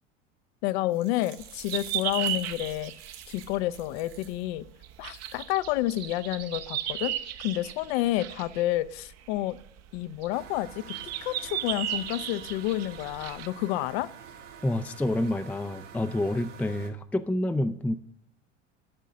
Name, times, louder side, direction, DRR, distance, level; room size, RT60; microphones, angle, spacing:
voice 1, 0.6-2.9 3.3-4.7 5.0-7.1 7.4-9.6 9.9-11.0 11.2-14.1, left 15 dB, 60° left, 16 dB, 0.7 m, -29 dB
sound 1, 0.7-4.4 4.9-5.4, right 9 dB, 60° right, 2.1 m, -49 dB
sound 2, 1.4-13.5, right 11 dB, 45° right, 0.9 m, -35 dB
sound 3, 10.3-16.9, right 7 dB, 75° right, 2.0 m, -47 dB
voice 2, 14.6-17.9, left 1 dB, 5° left, 9 dB, 0.5 m, -28 dB
12.0 x 5.5 x 6.3 m, 0.66 s
hypercardioid pair, 80°, 36 cm